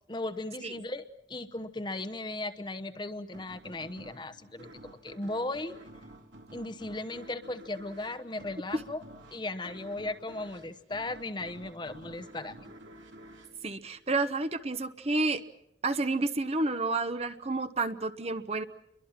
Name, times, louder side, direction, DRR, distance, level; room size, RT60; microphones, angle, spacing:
voice 1, 0.1-5.8 6.5-9.0 9.3-12.7, left 2 dB, 25° left, 11 dB, 1.0 m, -37 dB
sound 1, 3.3-14.6, right 1 dB, 85° right, 4.0 m, -51 dB
voice 2, 13.6-15.4 15.8-18.6, right 3 dB, 35° right, 10 dB, 1.1 m, -30 dB
29.5 x 23.0 x 6.0 m, 0.75 s
head